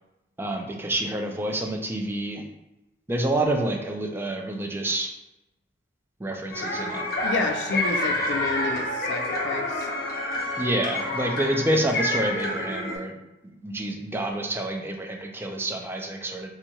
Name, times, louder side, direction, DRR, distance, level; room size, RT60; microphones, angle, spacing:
voice 1, 0.4-2.4 3.1-5.1 6.2-7.0 10.6-13.1 13.6-16.5, right 1 dB, 15° right, 2 dB, 0.4 m, -28 dB
sound 1, 6.5-13.0, left 1 dB, 55° left, 0.8 m, -28 dB
voice 2, 7.2-9.9, left 4 dB, 75° left, 5 dB, 0.4 m, -30 dB
4.4 x 2.8 x 2.2 m, 0.92 s
head